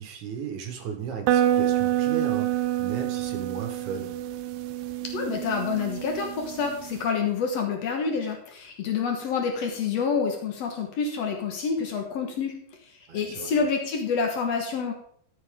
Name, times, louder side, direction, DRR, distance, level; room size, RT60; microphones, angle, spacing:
voice 1, 0.0-4.2 13.1-13.6, right 7 dB, 65° right, 3 dB, 2.0 m, -36 dB
sound 1, 1.3-7.0, right 12 dB, 85° right, 2.2 m, -27 dB
voice 2, 5.1-12.5 13.1-14.9, left 5 dB, 90° left, 2 dB, 1.4 m, -27 dB
13.5 x 7.7 x 3.7 m, 0.62 s
omnidirectional pair, 5.1 m